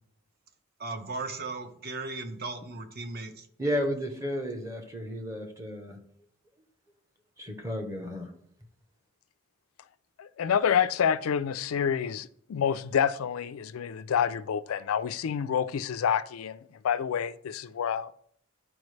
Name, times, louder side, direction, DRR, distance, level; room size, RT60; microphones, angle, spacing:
voice 1, 0.8-3.5, right 3 dB, 45° right, 0.8 m, -37 dB
voice 2, 3.6-6.0 7.4-8.3, equal, 15° right, 0.8 m, -32 dB
voice 3, 10.2-16.6 16.8-18.1, left 8 dB, 85° left, 0.4 m, -28 dB
10.5 x 4.6 x 3.2 m
head